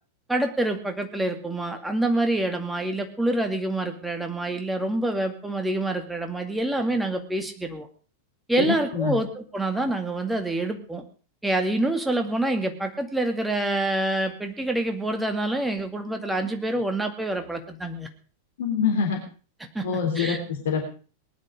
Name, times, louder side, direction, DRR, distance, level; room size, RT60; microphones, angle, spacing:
voice 1, 0.3-7.9 8.5-11.0 11.4-18.1 19.7-19.9 20.2-20.4, right 1 dB, 5° right, 5 dB, 2.2 m, -26 dB
voice 2, 8.6-9.2 18.6-19.2 19.8-20.9, left 6 dB, 60° left, 2 dB, 3.4 m, -25 dB
19.5 x 11.0 x 5.0 m, 0.39 s
figure-of-eight pair, 90°, 0 cm